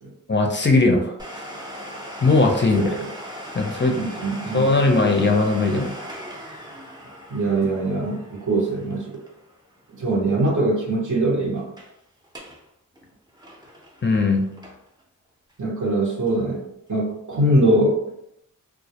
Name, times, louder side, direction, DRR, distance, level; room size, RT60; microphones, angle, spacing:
voice 1, 0.3-1.1 2.2-3.0 3.5-4.0 4.5-5.9 14.0-14.5, left 3 dB, 35° left, 2 dB, 0.4 m, -19 dB
Domestic sounds home sounds, 1.2-10.6 10.9-11.0 11.6-11.9 12.2-12.6 13.0-15.0 15.5-15.6 16.3-16.4, equal, 15° right, 0.5 m, -39 dB
voice 2, 2.7-3.1 3.9-4.7 7.3-9.1 10.0-11.7 15.6-18.0, right 1 dB, 65° right, -2 dB, 0.8 m, -22 dB
2.3 x 2.0 x 2.7 m, 0.78 s
wide cardioid pair, 45°, 33 cm